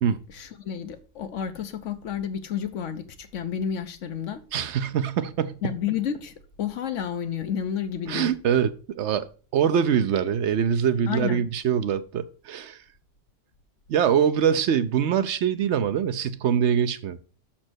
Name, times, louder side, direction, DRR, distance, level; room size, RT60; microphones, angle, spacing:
voice 1, 0.3-4.4 5.6-8.3 11.1-11.4, left 8 dB, 75° left, 1.1 m, -31 dB
voice 2, 4.5-5.7 8.1-12.8 13.9-17.2, right 8 dB, 70° right, 0.9 m, -24 dB
6.3 x 4.4 x 6.2 m
omnidirectional pair, 1.3 m